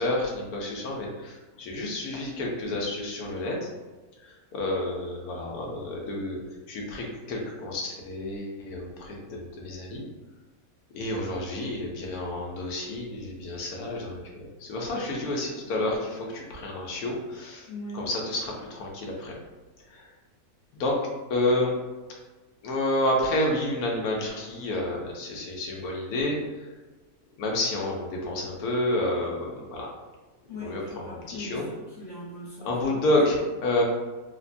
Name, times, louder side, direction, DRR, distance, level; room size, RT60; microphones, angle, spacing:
voice 1, 0.0-3.7 4.2-6.4 6.7-10.0 10.9-17.7 17.9-19.3 19.9-20.1 20.7-21.0 21.3-21.7 22.6-26.4 27.4-29.9 30.6-31.6 32.6-33.8, left 1 dB, 90° left, -1 dB, 1.2 m, -29 dB
voice 2, 17.7-18.1 30.5-33.0, left 1 dB, 60° left, -10 dB, 1.2 m, -40 dB
3.3 x 2.2 x 2.5 m, 1.2 s
omnidirectional pair, 1.5 m